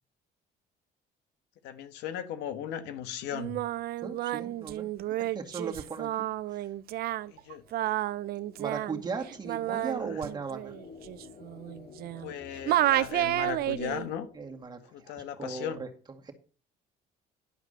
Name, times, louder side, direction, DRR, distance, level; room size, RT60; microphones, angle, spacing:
voice 1, 1.6-3.6 7.3-7.9 9.7-10.2 12.2-14.3 14.9-15.8, left 9 dB, 90° left, 9 dB, 1.3 m, -37 dB
Singing, 3.3-12.4 12.7-14.1, right 14 dB, 65° right, 0.5 m, -31 dB
voice 2, 4.0-6.7 8.6-10.7 14.3-15.9 16.2-16.3, right 5 dB, 25° right, 3 dB, 2.0 m, -38 dB
sound 1, 6.3-15.1, left 5 dB, 60° left, 2.7 m, -53 dB
11.0 x 4.9 x 6.6 m, 0.38 s
cardioid pair, 110°, 17 cm